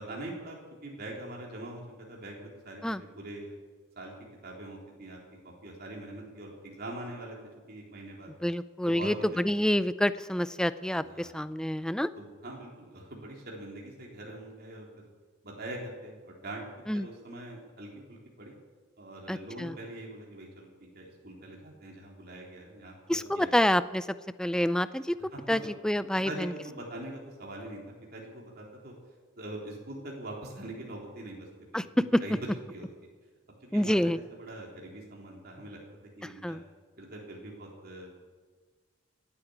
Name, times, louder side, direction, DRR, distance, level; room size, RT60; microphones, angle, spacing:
voice 1, 0.0-3.6 4.0-4.1 4.4-5.2 5.4-7.4 7.7-8.3 8.8-9.8 11.0-11.4 12.2-14.9 15.4-16.6 16.9-18.5 19.0-20.7 20.9-23.5 25.3-25.7 26.2-27.8 28.1-28.9 29.4-31.5 31.7-32.3 32.7-32.9 33.7-35.8 36.2-36.6 37.0-38.1, right 1 dB, 55° right, -2 dB, 3.7 m, -43 dB
voice 2, 8.4-12.1 16.9-17.1 19.3-19.7 23.1-24.1 24.4-25.2 25.5-26.5 31.7-31.8 32.1-32.2 33.7-34.2 36.4-36.6, equal, 5° left, 14 dB, 0.4 m, -27 dB
17.5 x 9.0 x 8.7 m, 1.5 s
head